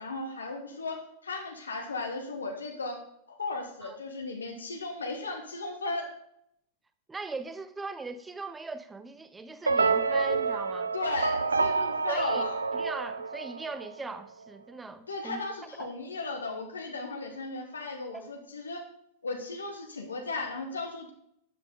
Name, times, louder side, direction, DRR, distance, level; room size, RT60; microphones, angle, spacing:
voice 1, 0.0-3.0 3.3-6.1 10.9-12.6 15.1-18.8 19.2-21.1, left 3 dB, 75° left, 1.4 m, -36 dB
voice 2, 7.1-10.9 12.1-12.4 12.7-15.4 15.8-15.9 18.1-18.2, right 3 dB, 15° right, 0.8 m, -39 dB
sound 1, 9.7-14.0, right 4 dB, 75° right, 0.5 m, -28 dB
12.5 x 8.2 x 3.8 m
figure-of-eight pair, 90°, 0 cm